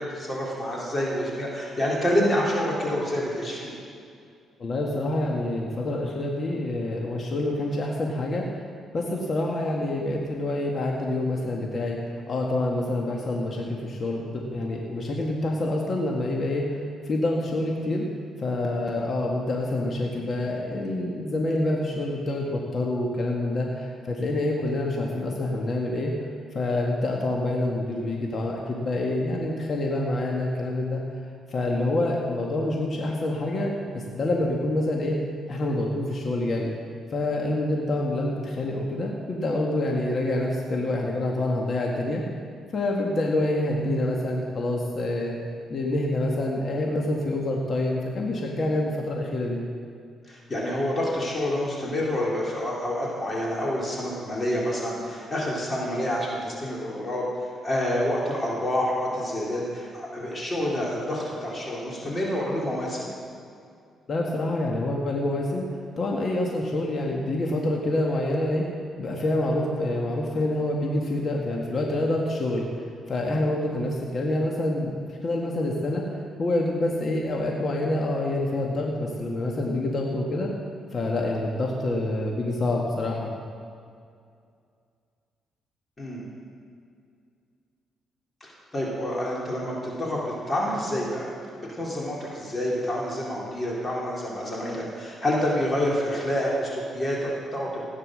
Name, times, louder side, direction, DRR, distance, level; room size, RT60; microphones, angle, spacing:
voice 1, 0.0-3.8 50.3-57.3 57.6-63.1 86.0-86.2 88.4-91.3 91.7-97.8, left 1 dB, 30° left, -4 dB, 3.8 m, -28 dB
voice 2, 4.6-8.5 8.9-12.0 12.3-16.7 17.1-18.1 18.4-26.1 26.5-31.0 31.5-35.2 35.5-36.7 37.1-42.2 42.7-45.3 45.7-49.6 64.1-65.7 66.0-68.7 69.0-72.7 73.1-76.0 76.4-80.5 80.9-83.3, left 1 dB, 45° left, -1 dB, 1.9 m, -27 dB
16.5 x 9.5 x 6.5 m, 2.3 s
cardioid pair, 90°, 0 cm